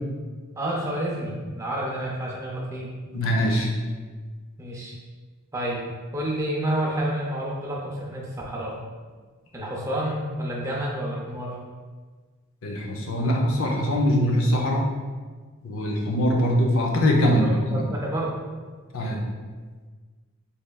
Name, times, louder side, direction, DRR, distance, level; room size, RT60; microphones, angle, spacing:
voice 1, 0.5-2.9 4.6-4.9 5.5-5.8 6.1-8.8 9.5-11.6 17.4-18.4, right 1 dB, 15° right, -3 dB, 0.5 m, -29 dB
voice 2, 3.1-3.7 12.6-14.9 15.6-17.8 18.9-19.2, equal, 65° left, 0 dB, 0.6 m, -22 dB
4.0 x 3.2 x 2.3 m, 1.4 s
head